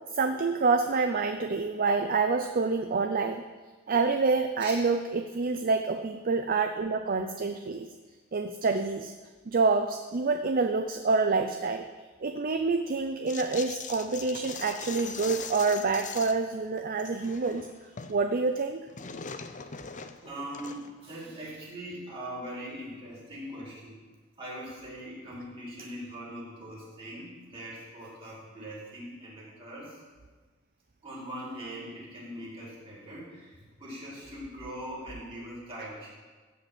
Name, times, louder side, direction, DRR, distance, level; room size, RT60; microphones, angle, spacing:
voice 1, 0.1-3.4 3.9-7.9 8.3-9.1 9.5-11.9 12.2-17.7 18.1-18.8, right 4 dB, 45° right, 7 dB, 0.5 m, -27 dB
sound 1, 13.3-16.5 16.8-18.2 18.4-21.0, left 6 dB, 35° left, 0.6 m, -41 dB
voice 2, 20.2-24.0 24.4-30.0 31.0-36.1, right 1 dB, 25° right, -7 dB, 4.6 m, -41 dB
15.0 x 5.0 x 7.9 m, 1.4 s
head